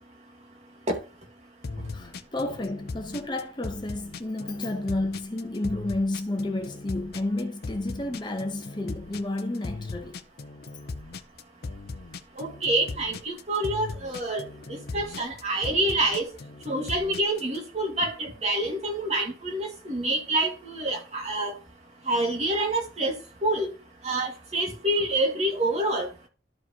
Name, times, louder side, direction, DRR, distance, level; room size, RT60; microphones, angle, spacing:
sound 1, 1.6-17.6, left 3 dB, 60° left, 0.5 m, -38 dB
voice 1, 1.9-10.2, left 2 dB, 25° left, 0.8 m, -31 dB
voice 2, 12.4-14.4 14.9-16.3 16.7-21.5 22.1-23.2 23.4-23.7 24.0-26.1, right 1 dB, 35° right, 1.7 m, -27 dB
12.5 x 4.9 x 2.8 m
head